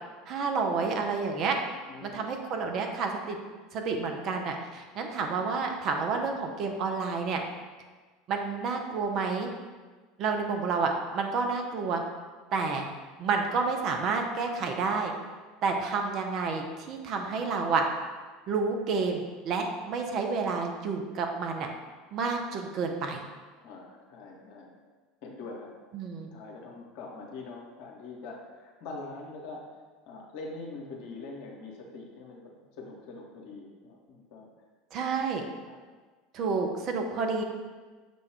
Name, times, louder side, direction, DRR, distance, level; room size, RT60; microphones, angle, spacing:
voice 1, 0.3-1.6 2.0-3.4 3.7-7.4 8.3-9.5 10.2-12.0 12.5-12.9 13.2-15.1 15.6-17.9 18.5-21.7 22.1-23.2 25.9-26.3 34.9-35.4 36.3-37.4, right 4 dB, 45° right, 3 dB, 0.5 m, -29 dB
voice 2, 1.9-2.3 23.6-24.7 25.2-25.7 26.3-29.8 30.1-34.5 35.6-35.8, left 3 dB, 55° left, -1 dB, 0.8 m, -43 dB
6.2 x 2.3 x 3.3 m, 1.4 s
figure-of-eight pair, 70°, 0 cm